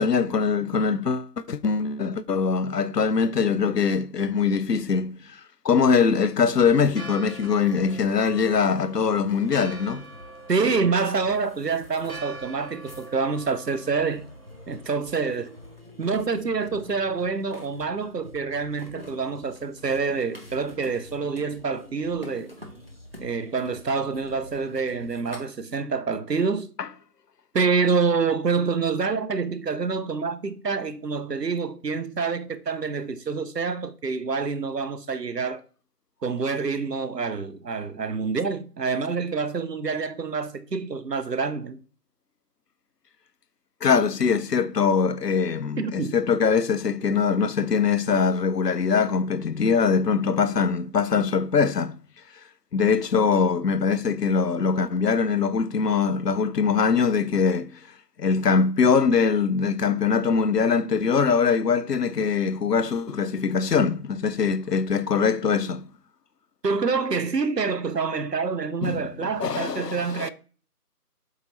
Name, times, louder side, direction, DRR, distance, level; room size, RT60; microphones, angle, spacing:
voice 1, 0.0-10.0 26.8-26.9 43.8-52.0 52.7-57.8 58.2-65.9 68.8-69.1 69.4-70.3, left 5 dB, 85° left, 0.6 m, -22 dB
Church bell, 6.9-15.8, right 2 dB, 60° right, 1.7 m, -45 dB
sound 1, 7.7-25.4, left 1 dB, 40° right, 0.8 m, -46 dB
voice 2, 10.5-14.3 14.7-15.5 16.0-22.5 23.2-26.7 27.5-35.6 36.2-41.8 45.8-46.2 66.6-70.3, right 5 dB, 90° right, 0.8 m, -27 dB
7.6 x 3.1 x 3.9 m
figure-of-eight pair, 170°, 47 cm